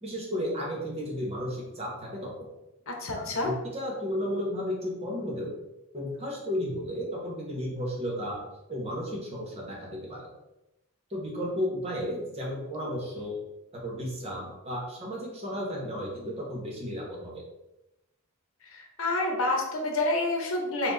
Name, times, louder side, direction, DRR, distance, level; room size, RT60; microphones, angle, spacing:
voice 1, 0.0-2.5 3.2-5.5 5.9-8.4 8.7-10.3 11.1-13.4 13.8-17.4, equal, 30° right, -3 dB, 1.1 m, -33 dB
voice 2, 2.9-3.5 18.7-20.9, left 2 dB, 70° left, 1 dB, 0.8 m, -28 dB
4.4 x 2.3 x 3.8 m, 0.93 s
head